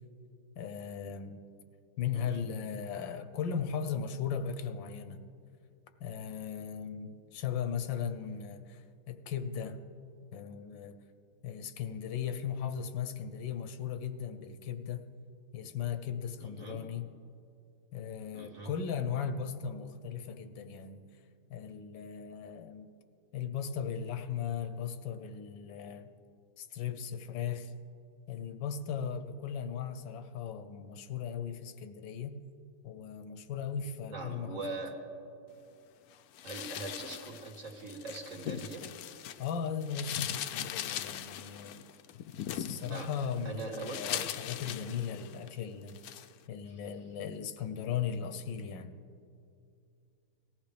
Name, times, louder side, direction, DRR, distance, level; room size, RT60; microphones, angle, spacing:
voice 1, 0.6-1.4 2.0-5.2 6.0-9.8 10.3-11.0 11.4-15.0 15.5-17.1 17.9-21.1 21.5-22.9 23.3-26.1 26.6-27.7 28.3-32.4 32.8-34.8 39.4-41.8 42.5-46.0 46.5-48.9, left 7 dB, 90° left, 10 dB, 1.5 m, -37 dB
voice 2, 16.4-16.8 18.3-18.7 34.1-35.0 36.4-38.9 42.8-43.1 43.4-44.2, right 3 dB, 45° right, 0 dB, 1.5 m, -41 dB
sound 1, 36.4-39.5 39.8-45.5 45.9-46.3, left 10 dB, 70° left, 0.9 m, -40 dB
19.0 x 14.5 x 3.4 m, 2.5 s
omnidirectional pair, 2.0 m